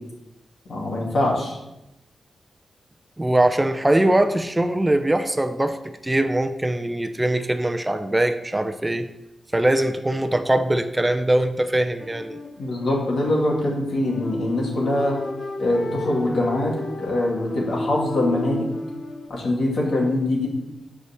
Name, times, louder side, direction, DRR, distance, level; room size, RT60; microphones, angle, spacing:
voice 1, 0.7-1.6 12.6-15.2 15.6-18.7 19.3-20.5, left 1 dB, 75° left, -2 dB, 2.5 m, -23 dB
voice 2, 3.2-9.1 9.5-12.4, right 1 dB, 20° right, 8 dB, 0.6 m, -22 dB
sound 1, 12.0-19.3, left 1 dB, 45° left, 1.0 m, -33 dB
7.1 x 4.9 x 6.6 m, 0.92 s
cardioid pair, 60°, 0 cm